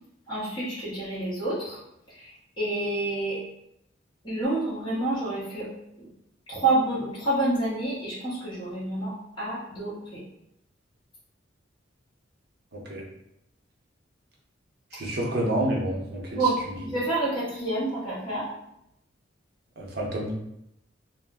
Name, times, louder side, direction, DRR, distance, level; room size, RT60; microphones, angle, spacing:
voice 1, 0.3-1.8 2.1-3.4 4.2-5.7 6.0-6.1 6.5-10.2 16.3-18.5, right 2 dB, 25° left, -9 dB, 1.0 m, -28 dB
voice 2, 12.7-13.0 14.9-16.4 19.8-20.3, right 1 dB, 55° right, -2 dB, 0.7 m, -28 dB
2.3 x 2.0 x 3.5 m, 0.81 s
head